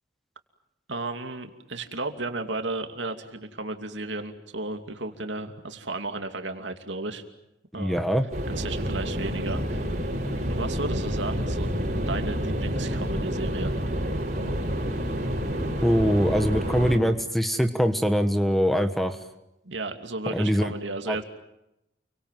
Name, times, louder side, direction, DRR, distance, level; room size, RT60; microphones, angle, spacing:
voice 1, 0.9-7.2 7.7-8.0 8.5-9.9 10.5-11.7 12.1-13.7 19.6-21.2, right 2 dB, 80° right, 5 dB, 2.7 m, -34 dB
voice 2, 7.8-8.3 15.8-19.2 20.3-20.7 21.1-21.2, equal, ahead, 8 dB, 1.3 m, -23 dB
sound 1, 8.3-17.0, equal, 40° right, 6.6 m, -28 dB
29.0 x 24.0 x 7.6 m, 0.85 s
head